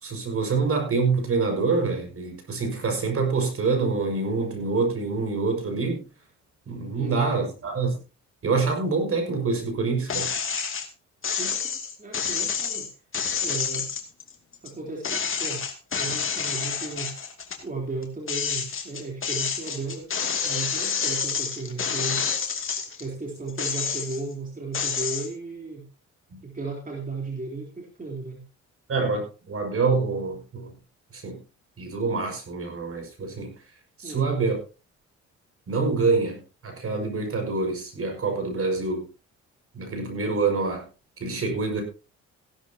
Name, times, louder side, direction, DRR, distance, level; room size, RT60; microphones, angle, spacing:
voice 1, 0.0-6.0 6.7-8.0 8.4-10.3 26.3-26.4 28.9-30.7 31.1-31.4 31.8-33.5 34.0-34.6 35.7-39.0 39.7-40.8 41.2-41.8, right 4 dB, 50° right, 4 dB, 5.8 m, -26 dB
voice 2, 7.0-7.3 11.2-12.9 13.4-13.9 14.6-15.6 15.9-17.1 17.6-20.1 20.4-22.2 23.0-25.8 26.4-28.4 34.0-34.4, right 3 dB, 25° right, -1 dB, 3.6 m, -35 dB
sound 1, 10.1-10.9 11.2-14.7 15.0-17.6 18.0-23.0 23.5-24.3 24.7-25.3, left 6 dB, 45° left, 2.5 m, -28 dB
16.0 x 12.5 x 2.9 m, 0.32 s
cardioid pair, 90°, 30 cm